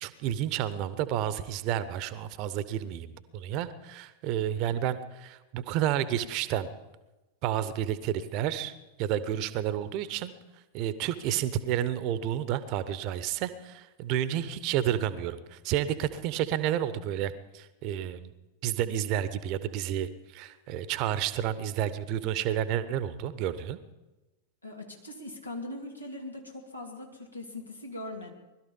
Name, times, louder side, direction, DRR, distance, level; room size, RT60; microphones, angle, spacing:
voice 1, 0.0-6.7 7.4-8.7 9.0-10.3 10.7-18.3 18.6-23.8, right 11 dB, 40° right, 14 dB, 0.9 m, -30 dB
voice 2, 24.6-28.3, left 1 dB, 85° left, 1 dB, 2.7 m, -41 dB
20.5 x 12.5 x 5.4 m, 1.1 s
figure-of-eight pair, 90°, 0 cm